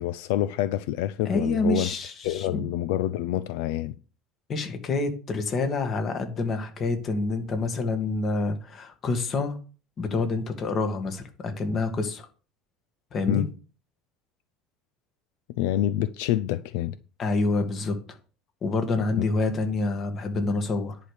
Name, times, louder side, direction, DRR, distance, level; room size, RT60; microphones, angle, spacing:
voice 1, 0.0-1.9 2.2-3.9 13.3-13.5 15.5-17.0 19.1-19.2, left 13 dB, 80° left, 0.6 m, -27 dB
voice 2, 1.3-2.7 4.5-9.6 10.0-12.3 13.1-13.5 17.2-18.0 18.6-21.0, left 3 dB, 35° left, 2.1 m, -27 dB
10.5 x 5.1 x 6.6 m
cardioid pair, 140°, 0 cm